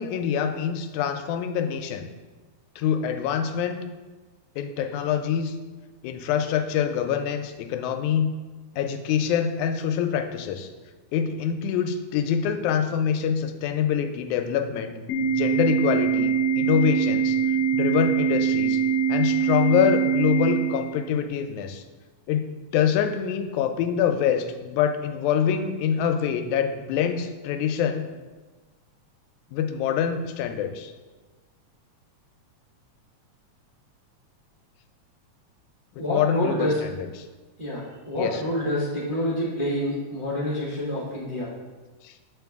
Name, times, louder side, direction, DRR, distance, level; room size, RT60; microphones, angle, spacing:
voice 1, 0.0-2.1 2.8-3.8 4.6-5.5 6.0-8.3 8.7-10.7 11.1-14.9 15.2-17.4 17.7-18.8 19.1-21.8 22.3-22.5 22.7-28.1 29.5-30.9 36.1-37.1 38.2-38.4 42.0-42.1, left 8 dB, 85° left, 7 dB, 2.0 m, -25 dB
Organ, 15.1-21.1, right 7 dB, 70° left, 1.5 m, -23 dB
voice 2, 36.0-36.8 37.6-41.5, left 1 dB, 75° right, -9 dB, 0.4 m, -27 dB
7.6 x 4.2 x 3.5 m, 1.3 s
omnidirectional pair, 3.3 m